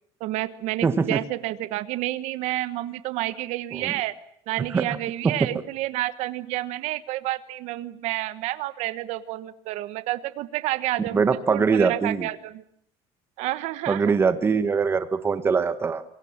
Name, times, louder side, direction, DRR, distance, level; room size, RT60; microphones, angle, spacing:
voice 1, 0.2-4.1 4.5-11.2 11.5-12.6 13.4-14.2, right 16 dB, 60° right, 13 dB, 1.2 m, -30 dB
voice 2, 0.8-1.2 3.8-3.9 4.7-4.9 5.2-5.3 11.0-12.3 13.9-16.0, right 5 dB, 20° right, 11 dB, 1.4 m, -22 dB
27.5 x 22.5 x 7.3 m, 0.69 s
cardioid pair, 165°, 13 cm